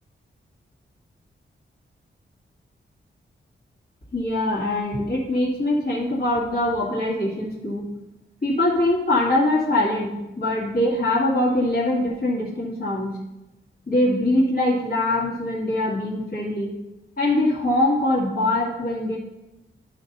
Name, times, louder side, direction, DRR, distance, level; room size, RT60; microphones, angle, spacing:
voice 1, 4.1-7.9 8.4-13.2 13.9-16.7 17.2-19.2, left 1 dB, 50° left, -6 dB, 2.1 m, -23 dB
11.5 x 4.0 x 5.4 m, 0.95 s
wide cardioid pair, 105°, 20 cm